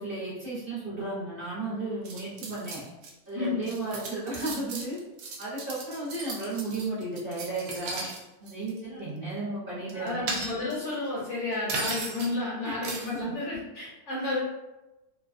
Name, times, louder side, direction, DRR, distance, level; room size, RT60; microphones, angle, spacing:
voice 1, 0.0-2.8 3.3-5.0 5.4-8.1 8.4-10.3 12.6-12.8, right 2 dB, 45° right, -9 dB, 0.8 m, -34 dB
sound 1, 2.0-3.1 3.4-8.2 8.5-8.8 9.9-10.9 11.7-12.3 12.8-13.2, right 3 dB, 70° right, 0.9 m, -36 dB
voice 2, 9.9-14.4, left 2 dB, 60° left, -6 dB, 0.9 m, -32 dB
2.6 x 2.2 x 2.5 m, 1.0 s
omnidirectional pair, 1.6 m